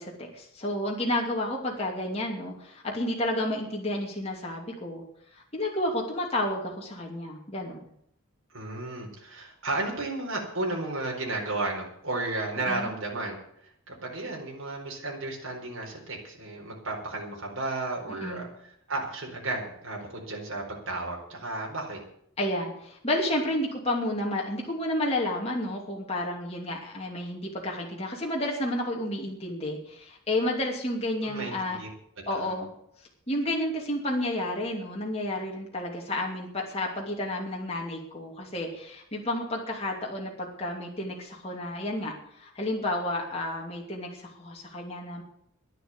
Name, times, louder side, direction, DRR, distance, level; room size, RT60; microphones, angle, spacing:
voice 1, 0.0-5.0 5.3-7.8 12.6-12.9 18.2-18.5 22.4-31.8 32.3-32.7 33.3-45.2, left 1 dB, 30° left, -1 dB, 2.8 m, -31 dB
voice 2, 8.5-13.4 13.9-22.0 31.2-31.9 32.3-32.5, right 2 dB, 65° right, -1 dB, 4.4 m, -33 dB
12.0 x 10.5 x 7.9 m, 0.70 s
head